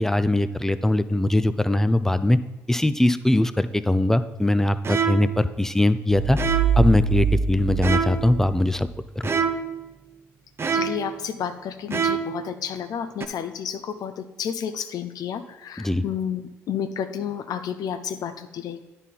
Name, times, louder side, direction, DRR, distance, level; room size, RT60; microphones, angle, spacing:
voice 1, 0.0-2.4 2.7-6.4 6.8-8.9 9.2-9.3 15.8-16.0, left 1 dB, 5° left, 12 dB, 0.5 m, -21 dB
sound 1, 4.8-5.5 6.4-6.9 7.8-8.4 9.2-9.8 10.6-11.2 11.9-12.4 13.2-13.3, right 6 dB, 35° right, 0.7 m, -26 dB
sound 2, 6.1-8.9, right 5 dB, 85° left, 1.4 m, -25 dB
voice 2, 10.7-18.8, left 8 dB, 60° left, 9 dB, 0.6 m, -31 dB
9.8 x 4.2 x 5.5 m, 1.0 s
hypercardioid pair, 50°, 7 cm